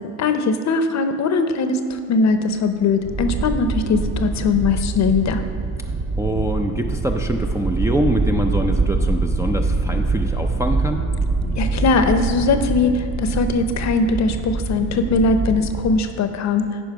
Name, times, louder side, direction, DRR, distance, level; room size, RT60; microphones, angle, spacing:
voice 1, 0.2-5.4 11.6-16.7, left 3 dB, 50° left, 8 dB, 0.7 m, -20 dB
sound 1, 3.1-16.0, right 3 dB, 35° right, 1.1 m, -24 dB
voice 2, 6.2-11.0, right 1 dB, 10° right, 2 dB, 0.4 m, -24 dB
9.9 x 5.2 x 4.7 m, 2.5 s
cardioid pair, 100°, 37 cm